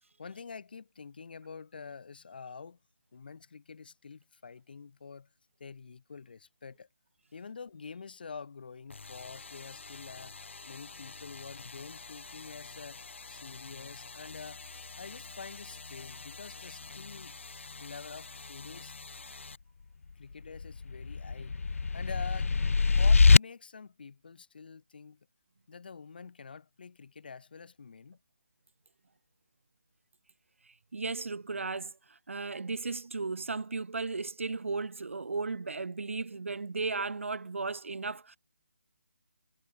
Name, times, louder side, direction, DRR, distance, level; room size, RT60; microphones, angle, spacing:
voice 1, 0.2-2.8 3.1-5.3 5.6-6.9 7.3-10.4 10.7-13.0 13.3-14.6 15.0-17.3 17.8-18.9 20.2-21.6 21.9-25.2 25.7-28.2, left 5 dB, 45° left, 6.5 m, -47 dB
sound 1, 8.9-19.6, left 4 dB, 60° left, 3.5 m, -47 dB
sound 2, 20.6-23.4, left 4 dB, 85° left, 0.5 m, -23 dB
voice 2, 30.9-38.4, right 4 dB, 70° right, 2.4 m, -35 dB
hypercardioid pair, 175°, 7 cm